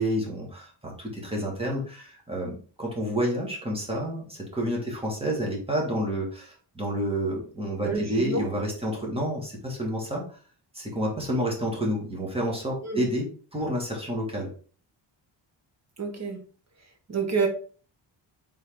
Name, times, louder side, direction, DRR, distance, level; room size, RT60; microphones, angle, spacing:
voice 1, 0.0-10.2 10.7-14.5, equal, 10° right, -2 dB, 1.7 m, -29 dB
voice 2, 7.8-8.4 12.8-13.0 16.0-16.4 17.1-17.5, right 4 dB, 35° right, 4 dB, 1.1 m, -28 dB
4.2 x 3.7 x 3.5 m, 0.41 s
wide cardioid pair, 125°, 46 cm